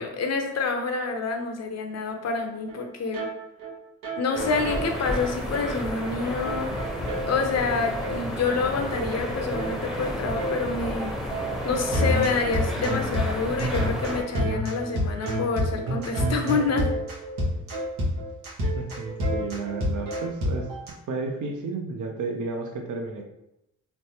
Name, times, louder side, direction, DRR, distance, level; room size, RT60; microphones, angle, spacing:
voice 1, 0.0-3.3 4.2-6.9 7.2-11.1 11.6-16.9, left 4 dB, 50° left, 5 dB, 0.6 m, -27 dB
sound 1, 2.4-2.5 2.7-2.9 3.1-3.3 3.6-3.7 4.0-5.7 6.0-6.1 6.4-7.7 8.0-8.2 8.5-8.6 8.9-20.9, equal, 85° right, 1.0 m, -29 dB
sound 2, 4.3-14.2, left 1 dB, ahead, 0.7 m, -32 dB
voice 2, 18.7-20.7 21.1-23.2, right 3 dB, 60° right, 3 dB, 0.6 m, -32 dB
3.2 x 2.1 x 2.8 m, 0.85 s
supercardioid pair, 60°, 34 cm